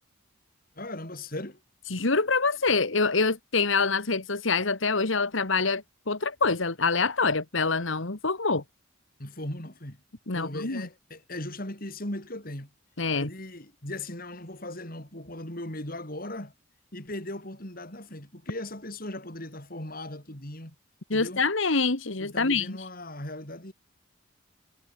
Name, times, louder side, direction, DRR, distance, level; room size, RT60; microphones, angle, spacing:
voice 1, 0.8-1.6 9.2-10.0 10.3-12.7 13.1-16.5 16.9-20.8 21.1-21.4 22.2-23.7, left 1 dB, 45° left, 5.7 m, -38 dB
voice 2, 1.9-8.6 10.3-10.8 13.0-13.3 21.1-22.8, left 4 dB, 70° left, 1.8 m, -26 dB
head